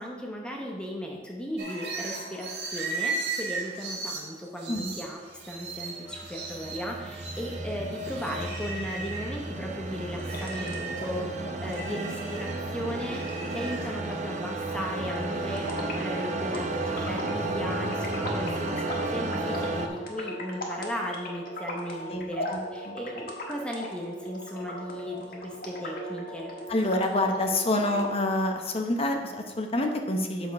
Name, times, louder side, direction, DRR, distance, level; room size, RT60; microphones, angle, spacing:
voice 1, 0.0-26.5, equal, 5° left, 0 dB, 0.9 m, -36 dB
sound 1, 1.6-9.4 9.8-14.1, right 3 dB, 70° right, 1.7 m, -37 dB
sound 2, 5.8-19.9, right 2 dB, 45° right, 0.7 m, -33 dB
sound 3, 10.1-28.1, equal, 55° left, 1.5 m, -39 dB
voice 2, 22.1-22.6 22.8-23.0 26.7-30.5, left 1 dB, 35° left, 3 dB, 0.9 m, -27 dB
8.2 x 6.1 x 4.7 m, 1.3 s
head